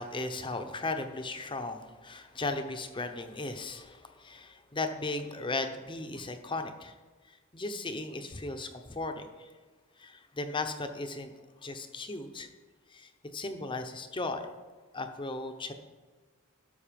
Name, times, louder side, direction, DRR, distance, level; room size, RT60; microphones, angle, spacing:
voice 1, 0.0-6.9 7.3-9.5 10.0-11.3 11.6-12.5 12.9-14.5 14.9-15.7, left 2 dB, 25° left, 7 dB, 0.8 m, -36 dB
12.5 x 6.4 x 5.2 m, 1.4 s
head